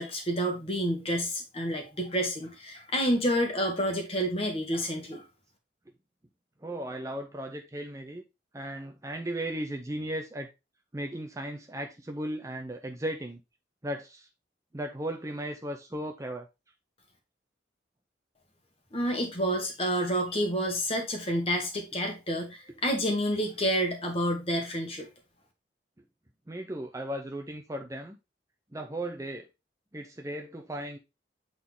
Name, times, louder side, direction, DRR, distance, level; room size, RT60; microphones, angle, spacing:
voice 1, 0.0-5.2 18.9-25.1, equal, 30° left, 1.7 m, -29 dB
voice 2, 6.6-8.2 8.5-10.5 10.9-13.4 13.8-14.3 14.7-16.5 19.6-19.7 26.5-28.2 28.7-29.5 29.9-31.0, right 1 dB, 15° right, 0.6 m, -36 dB
8.2 x 4.0 x 3.7 m
head